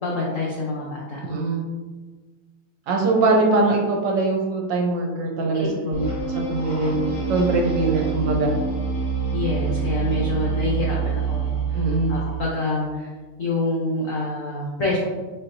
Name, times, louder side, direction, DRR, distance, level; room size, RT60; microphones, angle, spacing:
voice 1, 0.0-1.2 5.5-6.2 8.0-8.1 9.3-11.8 12.1-13.1 13.4-15.0, left 2 dB, 75° left, -4 dB, 0.7 m, -27 dB
voice 2, 1.3-1.6 2.9-6.1 6.3-8.5 11.7-12.1, right 3 dB, 70° right, 0 dB, 1.2 m, -22 dB
sound 1, 5.9-12.4, right 5 dB, 5° left, 0.7 m, -26 dB
4.2 x 4.1 x 2.6 m, 1.3 s
omnidirectional pair, 2.2 m